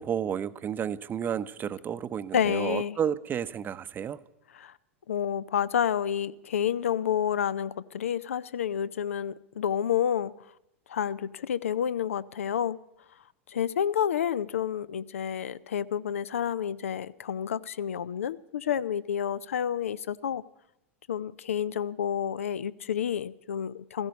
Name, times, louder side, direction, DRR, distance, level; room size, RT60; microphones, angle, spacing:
voice 1, 0.0-4.2, right 8 dB, 25° right, 14 dB, 0.7 m, -31 dB
voice 2, 2.3-3.0 4.6-4.7 5.1-10.3 10.9-12.8 13.5-20.4 21.1-24.1, left 9 dB, 75° left, 18 dB, 0.6 m, -29 dB
16.0 x 15.5 x 5.2 m, 0.87 s
figure-of-eight pair, 90°, 7 cm